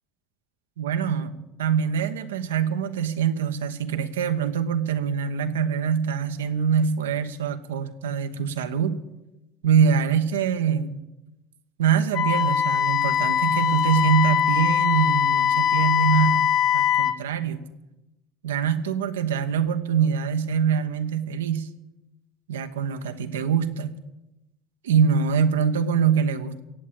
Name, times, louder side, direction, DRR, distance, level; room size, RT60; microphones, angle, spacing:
voice 1, 0.8-9.0 9.6-11.0 11.8-17.6 18.4-21.7 22.5-23.9 24.8-26.6, right 7 dB, 90° right, 9 dB, 1.1 m, -24 dB
Wind instrument woodwind instrument, 12.1-17.2, left 9 dB, 50° left, 0.9 m, -22 dB
17.5 x 7.6 x 8.8 m, 0.97 s
hypercardioid pair, 85°, 0 cm